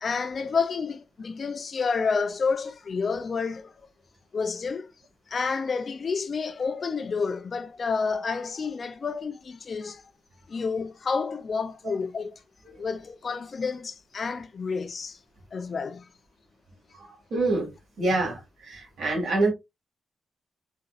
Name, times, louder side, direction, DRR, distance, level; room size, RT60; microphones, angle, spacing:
voice 1, 0.0-3.7 4.3-4.9 5.3-10.0 10.5-12.3 12.8-15.2 15.5-16.1, left 5 dB, 35° left, 0.3 m, -29 dB
voice 2, 17.3-17.7 18.0-19.5, right 2 dB, 65° right, 1.8 m, -26 dB
4.0 x 2.5 x 2.3 m
wide cardioid pair, 175°, 0 cm